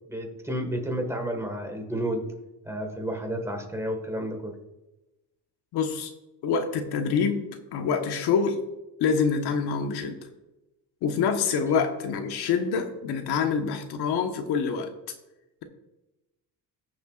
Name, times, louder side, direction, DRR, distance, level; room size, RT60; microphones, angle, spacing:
voice 1, 0.1-2.3 2.7-4.6, right 1 dB, 5° right, 4 dB, 1.7 m, -31 dB
voice 2, 5.7-6.1 6.4-8.6 9.0-10.2 11.0-14.9, left 6 dB, 70° left, 5 dB, 1.3 m, -26 dB
19.5 x 6.9 x 2.5 m, 1.0 s
cardioid pair, 135°, 40 cm